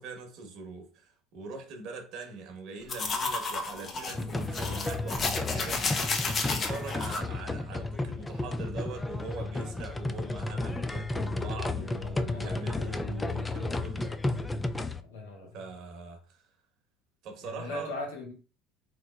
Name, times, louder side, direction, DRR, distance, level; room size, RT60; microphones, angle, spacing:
voice 1, 0.0-6.0 6.4-14.4 15.5-16.5 17.2-17.9, right 4 dB, 60° right, 0.9 m, -42 dB
sound 1, 2.9-7.2, left 3 dB, 35° left, 0.7 m, -32 dB
sound 2, 4.1-15.0, left 2 dB, 15° left, 0.3 m, -33 dB
voice 2, 12.0-12.7 15.0-15.5 17.4-18.3, left 2 dB, 90° left, 1.2 m, -39 dB
3.6 x 3.1 x 2.2 m
hypercardioid pair, 85°, 0 cm